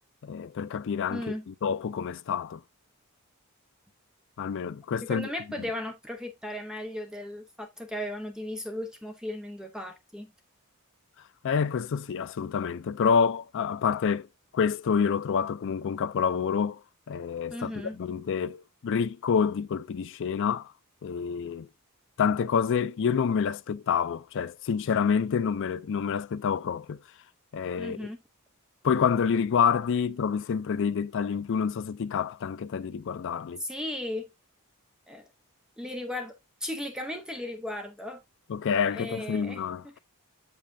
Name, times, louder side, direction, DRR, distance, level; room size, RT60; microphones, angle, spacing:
voice 1, 0.2-2.6 4.4-5.3 11.4-14.3 14.5-16.8 17.1-20.7 21.0-21.7 22.2-27.0 27.5-28.1 28.8-33.6 38.5-40.0, left 6 dB, 60° left, 0.4 m, -28 dB
voice 2, 1.1-1.5 5.1-10.3 17.5-18.0 27.8-28.2 33.6-34.3 35.1-35.2 35.8-36.3 36.6-38.2 38.9-39.6, left 1 dB, 5° right, 0.7 m, -36 dB
7.5 x 5.3 x 2.6 m
head